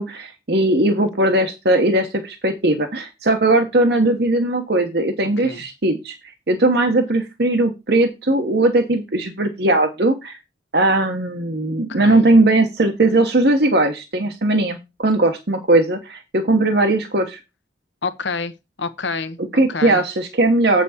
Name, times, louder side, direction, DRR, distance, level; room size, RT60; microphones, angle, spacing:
voice 1, 0.0-6.2 6.5-10.4 10.7-17.4 19.5-20.8, right 2 dB, 60° right, 1.2 m, -18 dB
voice 2, 11.9-12.3 18.0-18.5 18.8-19.4 19.7-20.0, left 4 dB, 85° left, 1.1 m, -27 dB
8.3 x 6.1 x 4.3 m
head